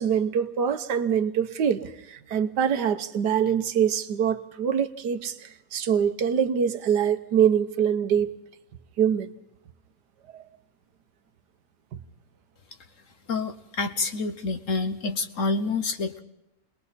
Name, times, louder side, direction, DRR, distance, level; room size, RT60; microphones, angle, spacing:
voice 1, 0.0-1.8 2.1-5.3 5.7-8.3 9.0-9.3 10.3-10.4, right 8 dB, 70° right, 1.6 m, -24 dB
voice 2, 13.3-16.2, left 3 dB, 50° left, 1.2 m, -28 dB
30.0 x 20.5 x 4.2 m
omnidirectional pair, 1.9 m